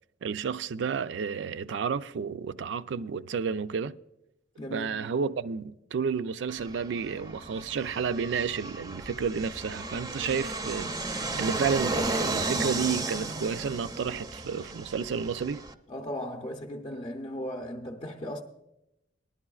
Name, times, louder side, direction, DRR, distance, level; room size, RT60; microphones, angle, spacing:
voice 1, 0.2-3.9 4.7-15.6, right 6 dB, 75° right, 0.4 m, -31 dB
voice 2, 4.6-5.1 15.9-18.4, left 1 dB, 30° left, 0.6 m, -37 dB
Fixed-wing aircraft airplane, 6.5-15.7, right 2 dB, 20° right, 0.5 m, -34 dB
19.5 x 11.0 x 2.3 m
head